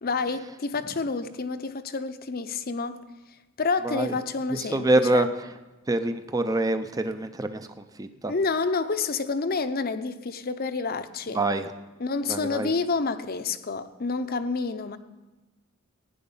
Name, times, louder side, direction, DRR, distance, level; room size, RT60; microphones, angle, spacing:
voice 1, 0.0-3.0 3.6-5.3 8.3-11.4 12.0-15.0, left 4 dB, 45° left, 0.7 m, -29 dB
voice 2, 4.5-5.5 5.9-7.7 8.0-8.3 11.3-11.7 12.3-12.7, right 2 dB, 15° right, 0.6 m, -25 dB
16.5 x 9.8 x 5.5 m
head